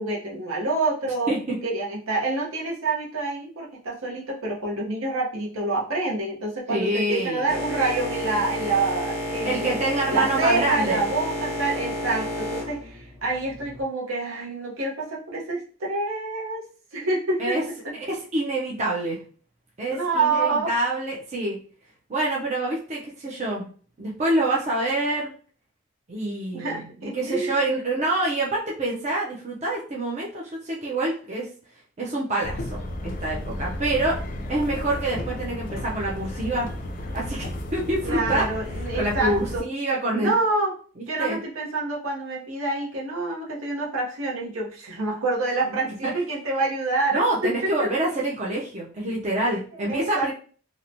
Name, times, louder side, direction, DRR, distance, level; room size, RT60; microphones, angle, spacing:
voice 1, 0.0-1.3 1.6-9.8 10.1-16.6 16.9-17.6 19.9-20.7 26.5-27.6 38.0-39.6 40.2-40.7 41.1-47.7 49.9-50.3, right 3 dB, 75° right, -3 dB, 0.8 m, -27 dB
voice 2, 1.3-1.6 6.7-7.5 9.4-11.0 17.4-17.6 17.9-19.2 19.8-21.6 22.1-23.7 24.0-25.3 26.1-26.9 27.1-31.5 32.0-34.2 34.5-36.7 37.1-38.5 38.9-40.3 41.2-41.4 46.0-46.1 47.1-50.3, right 2 dB, 30° right, -4 dB, 0.4 m, -26 dB
Boat Water vehicle, 7.5-13.8, left 1 dB, 15° right, 0.9 m, -31 dB
sound 1, 32.4-39.6, left 1 dB, 40° left, 0.3 m, -33 dB
2.8 x 2.1 x 2.6 m, 0.42 s
head